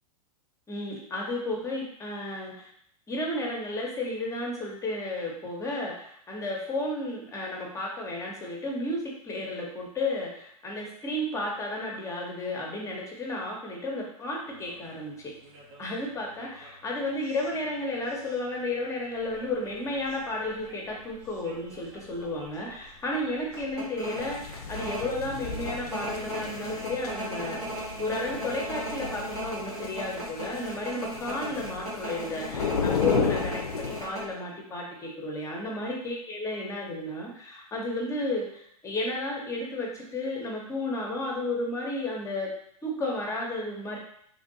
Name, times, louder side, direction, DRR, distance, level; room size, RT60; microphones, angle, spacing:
voice 1, 0.7-2.7 3.1-15.3 15.8-42.5 42.8-44.0, left 1 dB, 15° left, -1 dB, 0.7 m, -33 dB
sound 1, 14.4-28.1, right 1 dB, 50° right, 0.7 m, -52 dB
sound 2, 19.3-19.5 20.0-20.1 20.4-21.3 21.7-21.8 22.2-22.5 22.8-22.9 23.5-34.3, right 1 dB, 80° right, 1.3 m, -36 dB
sound 3, 24.2-34.0, left 5 dB, 85° left, 0.4 m, -33 dB
3.0 x 2.5 x 2.7 m, 0.68 s
hypercardioid pair, 100°, 19 cm